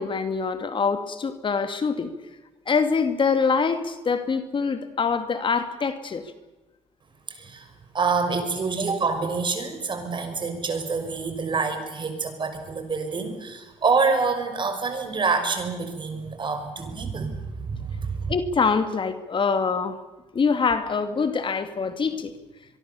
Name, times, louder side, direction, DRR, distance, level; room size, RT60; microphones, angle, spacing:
voice 1, 0.0-2.1 2.7-6.2 18.3-20.0 20.3-22.3, left 5 dB, 40° left, 9 dB, 2.4 m, -24 dB
voice 2, 7.9-18.3, right 4 dB, 40° right, 7 dB, 5.9 m, -27 dB
23.5 x 23.0 x 7.1 m, 1.2 s
supercardioid pair, 70°, 12 cm